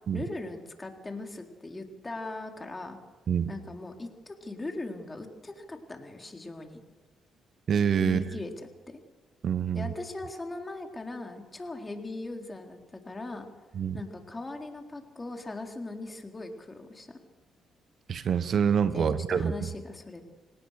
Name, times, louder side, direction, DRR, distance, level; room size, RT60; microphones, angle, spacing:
voice 1, 0.1-3.0 3.5-6.8 8.0-9.0 9.7-13.5 13.9-17.1 18.9-20.2, left 2 dB, 25° left, 3 dB, 3.9 m, -39 dB
voice 2, 7.7-8.2 9.4-9.9 13.7-14.0 18.1-19.5, right 7 dB, 60° right, 13 dB, 1.2 m, -26 dB
26.0 x 18.5 x 6.7 m, 1.2 s
supercardioid pair, 65°, 0 cm